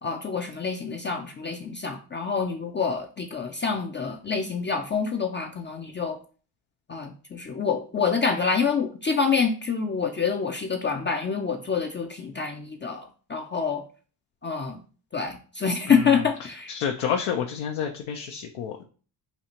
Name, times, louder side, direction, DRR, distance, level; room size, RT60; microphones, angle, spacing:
voice 1, 0.0-6.2 6.9-13.8 14.4-14.8 15.1-16.7, left 5 dB, 25° left, 4 dB, 0.4 m, -27 dB
voice 2, 15.9-16.2 16.7-18.8, left 7 dB, 75° left, 3 dB, 0.6 m, -29 dB
4.3 x 2.4 x 2.9 m, 0.39 s
supercardioid pair, 55°, 49 cm